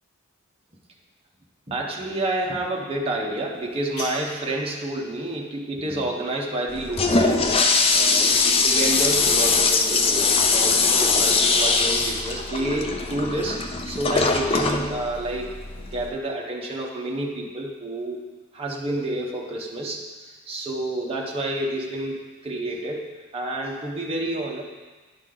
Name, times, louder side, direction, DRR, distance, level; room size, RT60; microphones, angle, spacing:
voice 1, 1.7-7.5 7.9-15.5 15.9-18.2 18.5-20.0 20.5-23.1 23.3-24.6, right 1 dB, 25° right, -2 dB, 0.9 m, -29 dB
sound 1, 3.5-4.5, left 1 dB, 80° left, 2.6 m, -38 dB
Toilet flush, 6.7-16.1, left 4 dB, 25° left, 0.4 m, -21 dB
10.5 x 5.1 x 3.8 m, 1.3 s
head